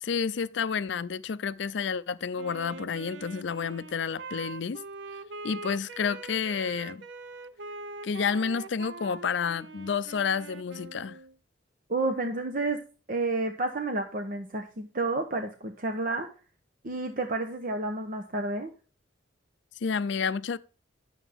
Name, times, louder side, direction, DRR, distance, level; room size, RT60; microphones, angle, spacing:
voice 1, 0.0-4.8 5.4-7.0 8.0-11.2 19.8-20.6, left 6 dB, 65° left, 0.5 m, -30 dB
Wind instrument woodwind instrument, 2.4-11.3, right 3 dB, 70° right, 0.6 m, -43 dB
voice 2, 11.9-12.8 13.1-16.3 16.8-18.7, right 2 dB, 50° right, 0.9 m, -30 dB
11.0 x 6.9 x 3.5 m
head